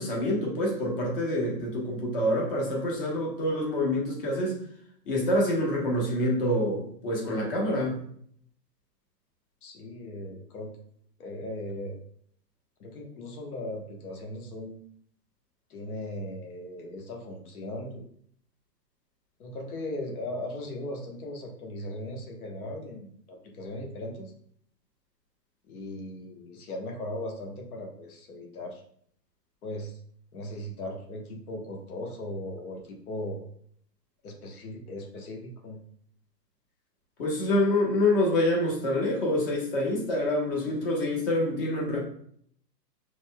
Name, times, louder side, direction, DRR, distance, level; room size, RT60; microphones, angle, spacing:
voice 1, 0.0-4.6 5.0-8.0 37.2-42.0, left 1 dB, 35° left, -2 dB, 1.2 m, -26 dB
voice 2, 9.6-10.7 11.2-12.0 12.8-14.8 15.7-18.1 19.4-24.3 25.6-28.8 29.6-30.0 30.3-33.4 34.2-35.8, left 1 dB, 60° left, 1 dB, 1.2 m, -38 dB
5.3 x 3.2 x 2.2 m, 0.64 s
hypercardioid pair, 170°, 50 cm